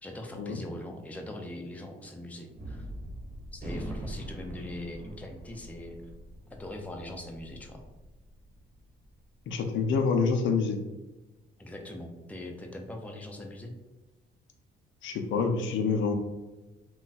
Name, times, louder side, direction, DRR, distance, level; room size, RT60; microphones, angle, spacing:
voice 1, 0.0-2.9 3.5-6.0 6.5-7.8 11.6-13.7, left 1 dB, 5° left, 2 dB, 0.4 m, -41 dB
Gunshot gunfire, 2.6-9.1, right 1 dB, 40° right, 0.8 m, -43 dB
voice 2, 9.5-10.8 15.0-16.1, left 5 dB, 75° left, 4 dB, 0.5 m, -27 dB
2.3 x 2.2 x 3.9 m, 1.1 s
cardioid pair, 90°, 20 cm